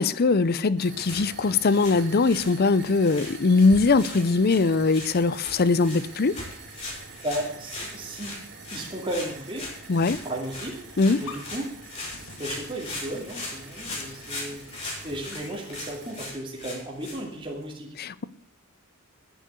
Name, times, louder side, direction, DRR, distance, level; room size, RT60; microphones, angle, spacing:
voice 1, 0.0-6.3 9.9-10.2 11.0-11.2 18.0-18.2, left 3 dB, 45° left, 18 dB, 0.5 m, -21 dB
sound 1, 0.8-16.4, right 4 dB, 55° right, 3.0 m, -46 dB
sound 2, 0.9-17.7, left 2 dB, 30° left, 5.6 m, -40 dB
voice 2, 7.2-8.3 8.7-9.7 10.2-10.8 11.2-11.8 12.4-14.6 15.0-17.9, right 1 dB, 25° right, -2 dB, 2.5 m, -34 dB
sound 3, 9.9-15.7, left 4 dB, 80° left, 2.4 m, -48 dB
10.5 x 10.5 x 8.1 m, 0.64 s
head